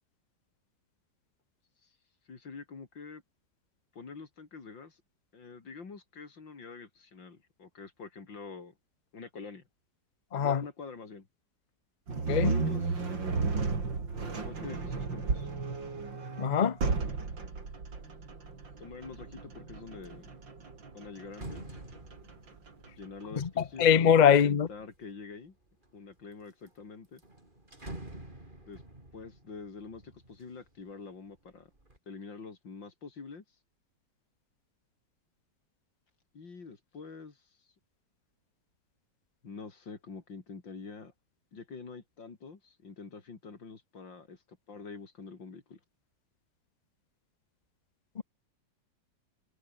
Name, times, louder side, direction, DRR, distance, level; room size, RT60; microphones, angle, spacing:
voice 1, 2.3-3.2 4.0-5.0 5.3-8.7 9.1-9.6 10.4-11.3 12.4-13.0 14.4-15.5 18.8-20.3 20.9-21.6 23.0-25.5 25.9-27.2 28.7-28.8 29.1-31.7 32.1-33.4 36.3-37.4 39.4-41.1 41.5-44.4 44.7-45.8, left 4 dB, 85° left, 3.9 m, -46 dB
voice 2, 10.3-10.6 12.3-12.5 16.4-16.8 23.4-24.7 48.2-48.3, left 8 dB, 50° left, 0.5 m, -23 dB
sound 1, 12.1-23.2, right 4 dB, 85° right, 4.4 m, -34 dB
sound 2, 19.0-19.3 19.7-25.0 25.6-26.3 26.7-26.8 27.0-31.0 31.4-32.0, right 1 dB, 25° right, 5.4 m, -49 dB
omnidirectional pair, 2.0 m